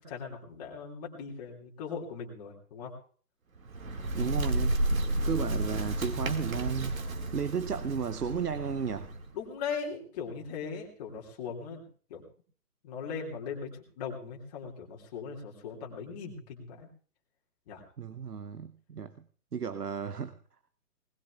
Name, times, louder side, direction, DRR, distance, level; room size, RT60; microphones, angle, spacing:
voice 1, 0.0-2.9 9.3-11.8 12.1-12.2 12.8-16.9 17.7-17.8, left 6 dB, 25° left, 2.5 m, -39 dB
Bird, 3.6-9.3, right 1 dB, 55° right, 2.1 m, -32 dB
voice 2, 4.1-7.0 7.3-9.2 18.0-19.2 19.5-20.3, right 6 dB, 70° right, 0.9 m, -34 dB
20.5 x 20.0 x 2.4 m
figure-of-eight pair, 140°, 48 cm